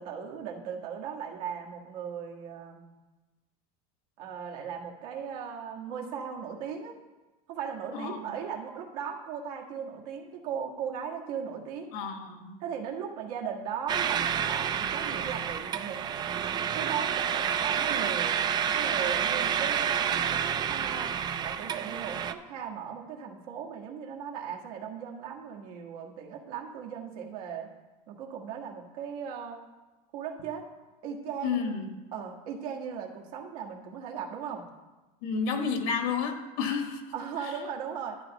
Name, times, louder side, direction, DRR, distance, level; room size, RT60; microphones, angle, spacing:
voice 1, 0.0-2.9 4.2-6.9 7.5-11.9 12.6-16.0 16.7-18.4 18.7-21.1 21.4-27.7 28.1-29.6 30.1-30.6 31.0-31.6 32.1-34.6 37.1-38.2, right 7 dB, 80° right, 0 dB, 1.6 m, -37 dB
voice 2, 7.9-8.3 11.9-12.6 31.4-31.9 35.2-37.0, left 5 dB, 70° left, 5 dB, 1.4 m, -31 dB
sound 1, 13.9-22.3, right 8 dB, 20° right, 0.3 m, -29 dB
11.5 x 9.5 x 3.0 m, 1.2 s
supercardioid pair, 140°, 19 cm